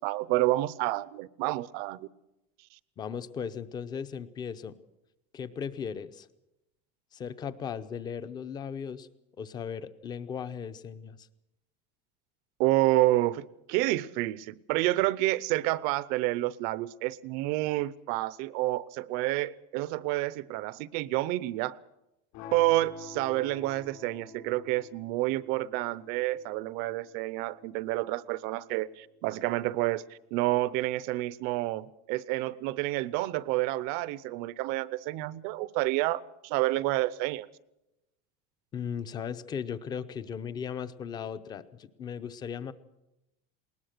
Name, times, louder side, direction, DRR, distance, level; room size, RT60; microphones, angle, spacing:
voice 1, 0.0-2.1 12.6-21.8 22.5-30.0 30.3-37.5, right 17 dB, 50° right, 0.6 m, -29 dB
voice 2, 3.0-4.7 5.3-6.3 7.1-9.1 9.4-11.3 38.7-42.7, left 7 dB, 20° left, 0.7 m, -37 dB
sound 1, 22.3-28.4, left 6 dB, 60° left, 5.1 m, -48 dB
20.5 x 19.5 x 6.7 m
cardioid pair, 175°, 20 cm